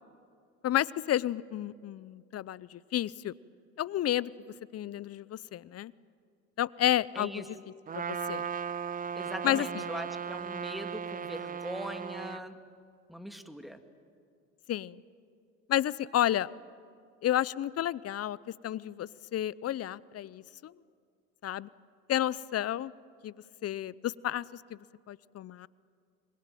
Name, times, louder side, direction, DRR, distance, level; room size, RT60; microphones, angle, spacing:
voice 1, 0.6-3.3 3.8-4.3 4.7-5.9 6.6-7.4 7.9-8.5 9.4-9.8 14.7-15.0 15.7-16.5 17.2-18.4 18.6-20.7 21.4-21.7 22.1-22.9 23.2-23.3 23.6-24.8 25.1-25.7, left 12 dB, 40° left, 21 dB, 0.7 m, -31 dB
voice 2, 7.1-7.4 9.1-12.6 13.1-13.8, equal, ahead, 6 dB, 2.3 m, -41 dB
Trumpet, 7.9-12.4, right 7 dB, 25° right, 0.6 m, -37 dB
27.0 x 21.5 x 9.1 m, 2.3 s
hypercardioid pair, 70°, 37 cm